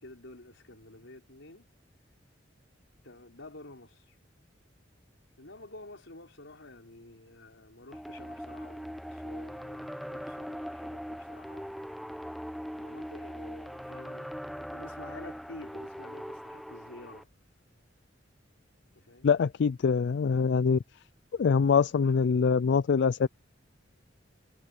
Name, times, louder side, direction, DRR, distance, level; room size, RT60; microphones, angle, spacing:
voice 1, 0.0-1.7 3.0-4.2 5.4-12.0 12.7-17.3 18.9-19.3 22.0-22.1, left 2 dB, 80° left, 4.6 m, -50 dB
sound 1, 7.9-17.2, equal, ahead, 0.7 m, -41 dB
voice 2, 19.2-20.8 21.3-23.3, left 5 dB, 60° left, 0.3 m, -24 dB
head